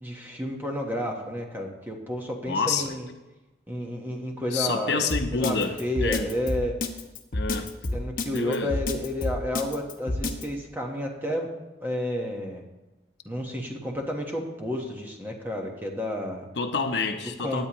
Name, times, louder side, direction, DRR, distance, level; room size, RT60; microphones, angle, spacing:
voice 1, 0.0-3.1 3.7-6.8 7.9-11.5 11.8-12.6 13.2-16.4 17.4-17.7, left 1 dB, 10° right, 1 dB, 1.3 m, -31 dB
voice 2, 2.5-3.0 4.5-6.3 7.3-7.7 8.3-8.7 16.6-17.7, left 4 dB, 75° left, 6 dB, 0.8 m, -28 dB
Drum kit, 5.1-10.4, left 2 dB, 50° left, 0.9 m, -29 dB
17.0 x 9.4 x 3.1 m, 1.1 s
head